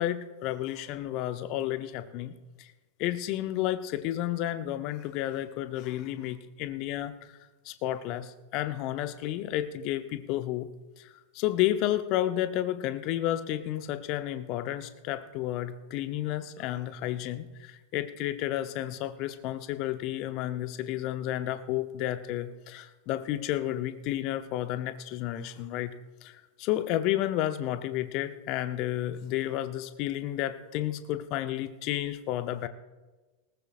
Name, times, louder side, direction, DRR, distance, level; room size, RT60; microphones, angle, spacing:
voice 1, 0.0-2.7 3.0-7.4 7.6-10.7 11.0-25.9 26.2-32.7, left 13 dB, 40° left, 11 dB, 0.8 m, -31 dB
19.5 x 18.5 x 2.5 m, 1.2 s
figure-of-eight pair, 90°, 0 cm